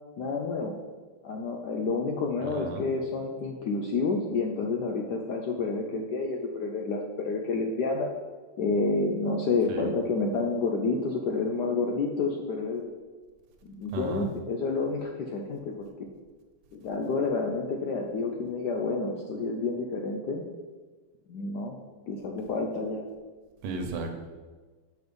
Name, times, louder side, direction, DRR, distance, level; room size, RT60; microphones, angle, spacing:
voice 1, 0.2-0.7 1.2-8.1 8.6-12.8 13.6-16.1 16.7-20.4 21.3-21.8 22.1-23.0, left 3 dB, 70° left, 2 dB, 1.0 m, -29 dB
voice 2, 2.4-2.9 9.7-9.9 13.9-14.3 23.6-24.1, right 3 dB, 85° right, 4 dB, 1.8 m, -34 dB
6.0 x 5.2 x 5.2 m, 1.4 s
omnidirectional pair, 2.4 m